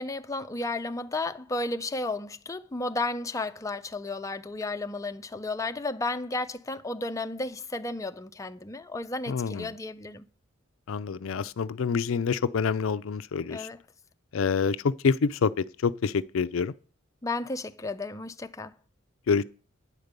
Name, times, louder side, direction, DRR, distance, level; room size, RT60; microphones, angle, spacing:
voice 1, 0.0-10.3 13.5-13.8 17.2-18.7, left 2 dB, 15° left, 0.5 m, -33 dB
voice 2, 9.3-9.7 10.9-13.7 14.3-16.7 19.3-19.4, left 5 dB, 80° left, 0.4 m, -27 dB
9.7 x 5.2 x 8.0 m
head